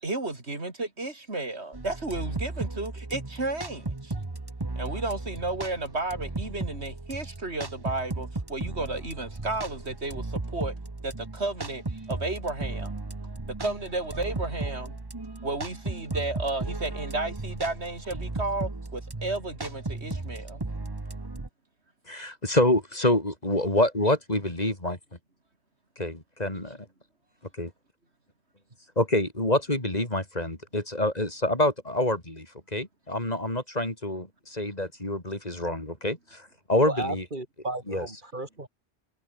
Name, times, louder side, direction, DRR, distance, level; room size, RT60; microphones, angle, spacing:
voice 1, 0.0-4.1 4.8-10.7 11.0-12.9 13.5-14.9 15.4-20.6, right 2 dB, 85° right, 4.3 m, -33 dB
sound 1, 1.7-21.5, right 2 dB, 20° right, 1.3 m, -35 dB
voice 2, 22.1-25.0 26.0-26.8 27.6-27.7 29.0-32.5 32.7-37.2 37.9-38.1, left 1 dB, 40° left, 4.6 m, -27 dB
voice 3, 36.8-38.7, right 2 dB, 50° right, 3.3 m, -34 dB
omnidirectional pair, 1.1 m